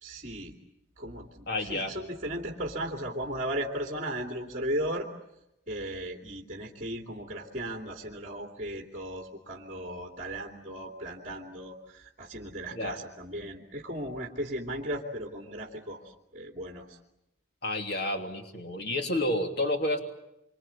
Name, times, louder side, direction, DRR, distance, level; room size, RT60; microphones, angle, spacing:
voice 1, 0.0-0.5 1.0-5.1 5.7-16.0 16.3-16.9, right 1 dB, 40° right, 1 dB, 2.8 m, -36 dB
voice 2, 1.5-1.9 12.7-13.0 17.6-20.0, left 1 dB, 50° left, 4 dB, 3.1 m, -30 dB
27.0 x 25.5 x 8.5 m, 0.87 s
head